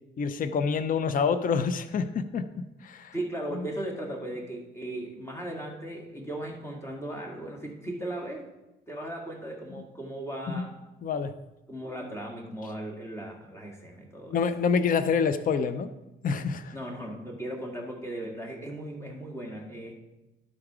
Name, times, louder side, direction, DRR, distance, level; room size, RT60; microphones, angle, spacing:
voice 1, 0.2-3.1 3.6-3.7 10.5-10.7 11.0-11.3 14.3-15.9 16.2-16.7, left 5 dB, 45° left, 12 dB, 0.5 m, -27 dB
voice 2, 3.1-8.5 8.9-10.7 11.7-14.4 16.7-20.0, right 1 dB, 15° left, 0 dB, 2.0 m, -37 dB
12.0 x 4.8 x 4.8 m, 1.0 s
cardioid pair, 90°, 20 cm